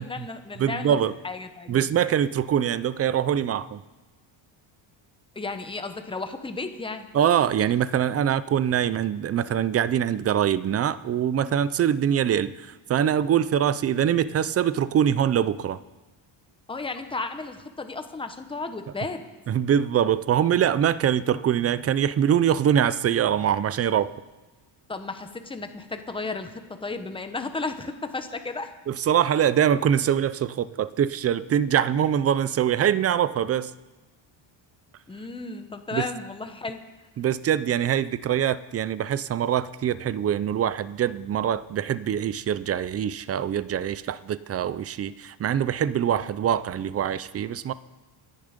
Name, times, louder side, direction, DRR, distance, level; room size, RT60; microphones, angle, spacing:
voice 1, 0.0-1.0 1.2-1.9 5.3-7.1 16.7-19.2 24.9-28.7 35.1-36.8, left 3 dB, 10° left, 7 dB, 1.0 m, -34 dB
voice 2, 0.6-1.1 1.7-3.8 7.1-15.8 19.5-24.1 28.9-33.7 35.9-36.1 37.2-47.7, right 9 dB, 30° right, 17 dB, 0.4 m, -24 dB
26.5 x 10.5 x 5.1 m, 1.2 s
cardioid pair, 150°, 49 cm